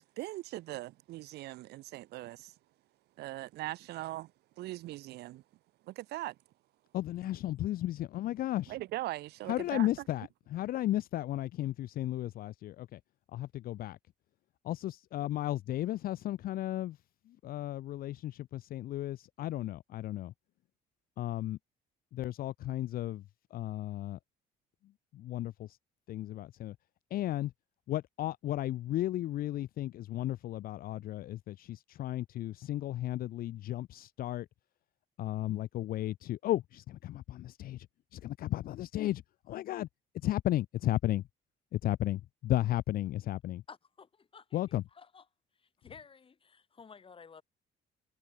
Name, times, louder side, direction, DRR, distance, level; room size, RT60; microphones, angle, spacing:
voice 1, 0.0-2.5 3.2-4.3 4.6-5.4 5.9-6.3 8.7-9.9, right 17 dB, 75° right, 0.8 m, -40 dB
voice 2, 6.9-8.8 9.5-13.0 13.3-14.0 14.6-17.0 17.3-20.3 21.2-21.6 22.1-23.2 23.5-24.2 25.1-25.8 26.1-26.8 27.1-27.5 27.9-34.5 35.2-37.9 38.1-39.9 40.2-41.2 41.7-43.6 44.5-44.8, left 14 dB, 60° left, 0.6 m, -34 dB
voice 3, 43.7-44.6 44.9-45.3 45.5-47.4, left 5 dB, 30° left, 5.3 m, -54 dB
cardioid pair, 110°, 17 cm